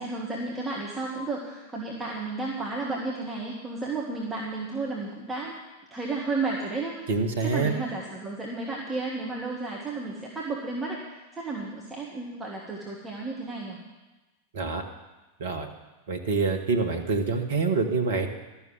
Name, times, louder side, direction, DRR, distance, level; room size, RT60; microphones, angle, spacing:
voice 1, 0.0-5.5 5.9-7.1 7.4-13.8, right 3 dB, 15° right, -4 dB, 1.9 m, -33 dB
voice 2, 7.1-7.7 14.5-14.8 15.4-15.7 16.1-18.3, right 4 dB, 60° right, 6 dB, 1.5 m, -26 dB
12.5 x 7.1 x 9.1 m, 1.1 s
figure-of-eight pair, 90°, 0 cm